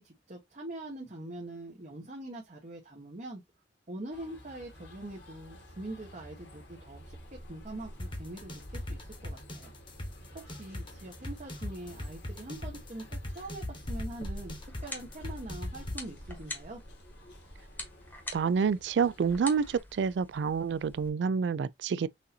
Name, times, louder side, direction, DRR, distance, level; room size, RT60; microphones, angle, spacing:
voice 1, 0.0-3.4 3.9-7.2 7.5-9.7 10.1-14.5 14.8-16.8, right 1 dB, 45° right, 1.1 m, -43 dB
sound 1, 4.1-19.8, equal, 75° left, 1.8 m, -48 dB
sound 2, 8.0-16.0, left 1 dB, 30° left, 1.1 m, -38 dB
sound 3, 14.5-21.1, left 1 dB, 10° left, 1.1 m, -46 dB
voice 2, 18.3-22.1, right 6 dB, 80° right, 0.3 m, -28 dB
6.2 x 2.7 x 2.7 m
head